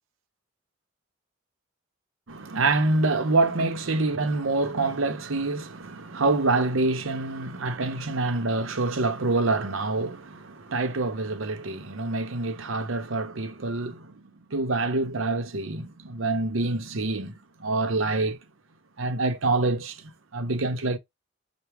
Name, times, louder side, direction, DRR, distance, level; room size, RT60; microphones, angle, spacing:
voice 1, 2.3-17.3 17.6-18.4 19.0-21.0, right 3 dB, 75° right, 0.8 m, -26 dB
5.9 x 2.2 x 3.4 m
head